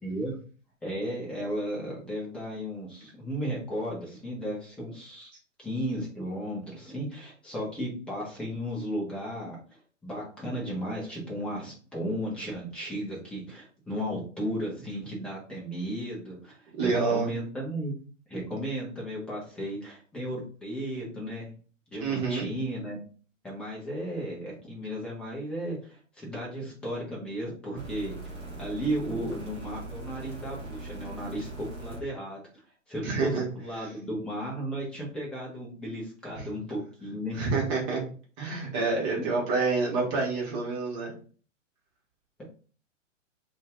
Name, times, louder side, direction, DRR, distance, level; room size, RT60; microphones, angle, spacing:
voice 1, 0.0-0.4 0.8-5.3 5.6-9.6 10.0-18.0 18.3-21.5 21.9-23.0 23.4-28.2 28.6-32.4 32.9-37.5 39.2-39.3, equal, 5° left, -4 dB, 0.4 m, -34 dB
voice 2, 16.8-17.3 22.0-22.5 33.0-33.5 33.8-33.9 36.3-36.5 37.3-38.0 38.4-41.1, right 4 dB, 30° right, -2 dB, 1.2 m, -28 dB
sound 1, 27.8-32.0 32.9-33.0, right 2 dB, 15° right, 0.8 m, -40 dB
2.5 x 2.3 x 3.6 m, 0.40 s
figure-of-eight pair, 115°, 39 cm